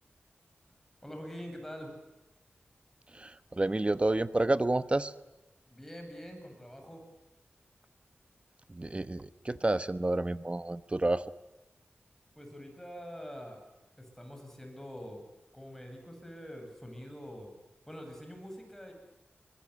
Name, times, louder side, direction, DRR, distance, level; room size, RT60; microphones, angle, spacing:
voice 1, 1.0-1.9 5.7-7.0 12.3-13.6 14.0-15.2 15.5-17.5 17.9-18.9, equal, 10° left, 3 dB, 7.9 m, -45 dB
voice 2, 3.1-5.1 8.7-11.2, right 2 dB, 30° right, 14 dB, 1.0 m, -29 dB
24.0 x 21.0 x 9.8 m, 0.99 s
wide cardioid pair, 75°, 4 cm